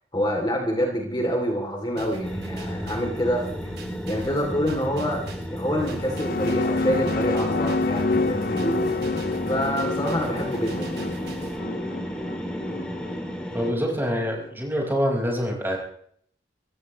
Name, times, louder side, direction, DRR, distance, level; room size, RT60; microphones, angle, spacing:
voice 1, 0.1-3.7 4.1-5.2 5.5-11.2, equal, 25° left, 1 dB, 3.1 m, -27 dB
sound 1, 2.0-11.6, right 2 dB, 75° right, 7.7 m, -45 dB
sound 2, 2.2-13.7, equal, 5° left, 2.7 m, -33 dB
sound 3, 5.8-14.5, left 3 dB, 50° left, 0.6 m, -28 dB
voice 2, 13.5-15.8, equal, 10° right, -1 dB, 5.3 m, -25 dB
25.5 x 16.0 x 3.2 m, 0.62 s
head